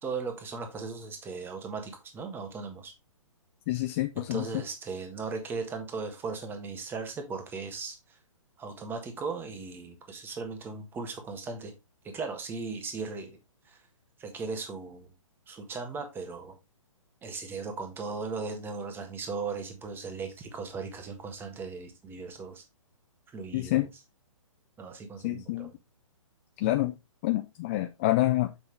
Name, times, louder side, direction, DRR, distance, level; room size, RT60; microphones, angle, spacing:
voice 1, 0.0-2.9 4.2-8.0 8.6-11.7 12.0-13.4 13.7-13.8 14.2-15.1 15.5-16.5 17.2-22.6 23.3-23.9 24.8-25.7, right 4 dB, 10° right, 1.4 m, -37 dB
voice 2, 3.7-4.4 23.5-23.9 25.2-25.7 26.6-26.9 27.2-28.5, left 16 dB, 25° left, 0.4 m, -27 dB
6.9 x 6.0 x 3.2 m
figure-of-eight pair, 130°, 17 cm